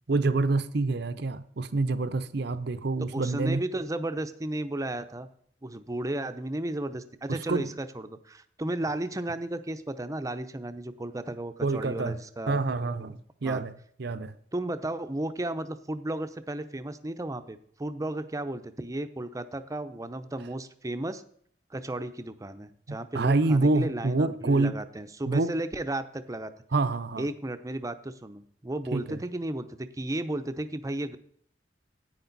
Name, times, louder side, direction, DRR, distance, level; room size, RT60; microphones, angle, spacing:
voice 1, 0.1-3.6 7.3-7.7 11.6-12.2 12.5-13.7 14.0-14.3 22.9-24.7 25.3-25.5 26.7-27.3 28.9-29.2, right 3 dB, 65° right, 0.7 m, -27 dB
voice 2, 3.1-5.3 5.6-12.6 13.1-13.2 13.4-13.6 14.5-21.2 21.7-26.5 27.2-31.2, right 1 dB, 20° right, 0.6 m, -34 dB
10.0 x 9.0 x 4.0 m
head